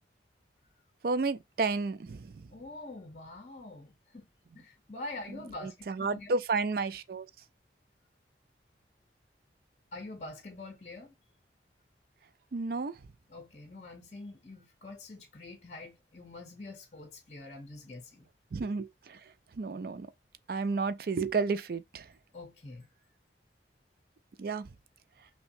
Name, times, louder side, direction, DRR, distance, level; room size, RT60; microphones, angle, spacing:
voice 1, 1.0-2.3 5.3-7.3 12.5-12.9 18.5-19.2 19.6-20.1 20.5-22.1 24.4-24.7, right 4 dB, 55° right, 0.4 m, -32 dB
voice 2, 2.5-4.3 4.5-6.4 9.9-11.1 13.3-18.3 22.3-22.9, left 2 dB, 40° left, 0.7 m, -45 dB
5.6 x 2.3 x 2.6 m
head